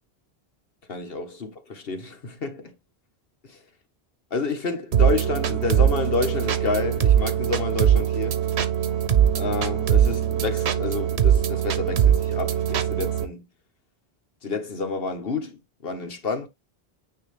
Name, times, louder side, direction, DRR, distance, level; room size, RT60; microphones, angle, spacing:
voice 1, 0.9-2.7 3.5-3.6 4.3-8.4 9.3-13.5 14.4-16.5, left 4 dB, 65° left, 1.5 m, -29 dB
sound 1, 4.9-13.3, right 9 dB, 85° right, 1.1 m, -21 dB
9.3 x 3.2 x 3.3 m
omnidirectional pair, 1.1 m